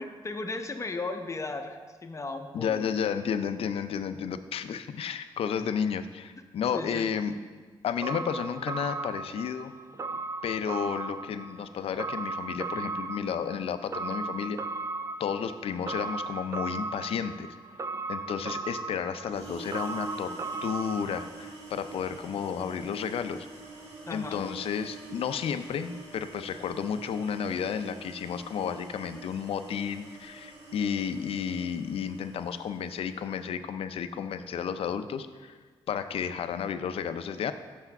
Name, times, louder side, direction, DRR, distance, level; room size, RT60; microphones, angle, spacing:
voice 1, 0.0-3.0 6.7-7.1 24.0-24.4, left 3 dB, 30° left, 6 dB, 0.7 m, -36 dB
voice 2, 2.5-7.3 7.8-9.7 10.4-14.6 15.2-17.5 18.1-20.4 20.6-23.5 24.1-35.6 35.9-37.5, left 7 dB, 75° left, 11 dB, 0.5 m, -32 dB
sound 1, 8.0-21.3, right 3 dB, 30° right, 0.4 m, -37 dB
sound 2, 19.2-33.2, right 3 dB, 80° right, 1.8 m, -46 dB
6.3 x 5.7 x 5.9 m, 1.5 s
cardioid pair, 80°, 10 cm